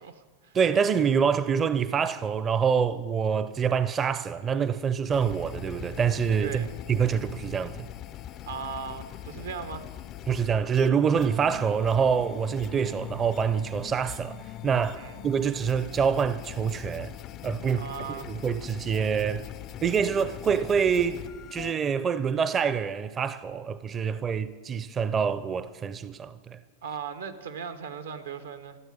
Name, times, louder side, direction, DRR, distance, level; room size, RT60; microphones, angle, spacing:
voice 1, 0.0-0.6 6.4-6.7 8.5-9.9 15.0-15.2 17.8-18.3 24.0-24.1 26.8-28.8, right 6 dB, 85° right, 1.1 m, -38 dB
voice 2, 0.5-7.9 10.3-17.1 17.4-19.5 19.8-21.2 21.5-26.6, right 6 dB, 25° right, 0.5 m, -26 dB
sound 1, 5.1-21.7, left 12 dB, 40° left, 0.4 m, -42 dB
13.5 x 7.9 x 8.8 m
hypercardioid pair, 110°, 0 cm